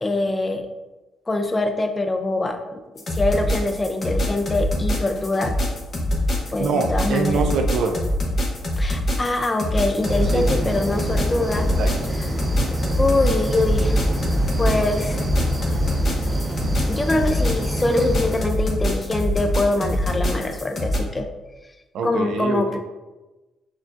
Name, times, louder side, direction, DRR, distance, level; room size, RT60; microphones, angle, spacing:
voice 1, 0.0-0.7 1.3-2.8 3.1-5.5 6.5-7.5 8.8-11.7 13.0-14.0 14.6-15.2 16.9-21.3 22.0-22.8, left 2 dB, 20° left, 5 dB, 0.4 m, -23 dB
sound 1, 3.0-21.0, left 1 dB, 45° left, 0.9 m, -24 dB
voice 2, 6.6-8.0 10.3-10.7 11.8-12.0 21.9-22.8, right 4 dB, 75° right, 5 dB, 0.4 m, -25 dB
Dawn in The Gambia Africa, 10.0-18.4, equal, 25° right, 0.6 m, -25 dB
5.9 x 2.3 x 2.5 m, 1.1 s
cardioid pair, 90°, 0 cm